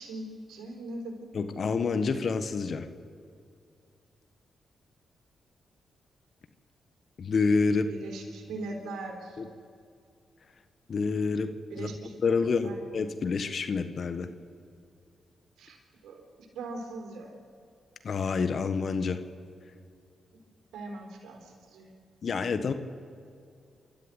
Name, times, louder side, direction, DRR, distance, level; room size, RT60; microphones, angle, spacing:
voice 1, 0.0-1.3 7.9-9.4 11.7-12.8 15.6-16.3 16.5-17.3 20.7-21.9, right 2 dB, 75° right, 3 dB, 4.0 m, -40 dB
voice 2, 1.3-2.9 7.2-7.9 9.4-9.5 10.9-11.5 11.8-11.9 12.2-14.3 18.0-19.2 22.2-22.7, left 4 dB, 60° left, 10 dB, 1.5 m, -28 dB
29.0 x 13.5 x 8.3 m, 2.4 s
hypercardioid pair, 40°, 0 cm